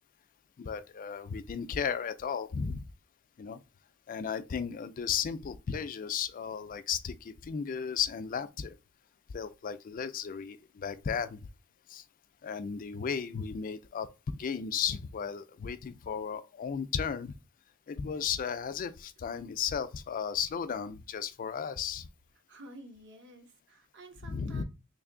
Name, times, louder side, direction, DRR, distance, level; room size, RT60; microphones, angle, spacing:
voice 1, 0.6-2.8 3.4-3.6 4.1-8.8 9.3-11.4 11.9-12.0 12.4-17.3 17.9-22.1 24.2-24.6, left 7 dB, 40° left, 0.3 m, -35 dB
voice 2, 22.5-24.6, right 2 dB, 55° right, 0.8 m, -51 dB
3.3 x 2.6 x 3.7 m
head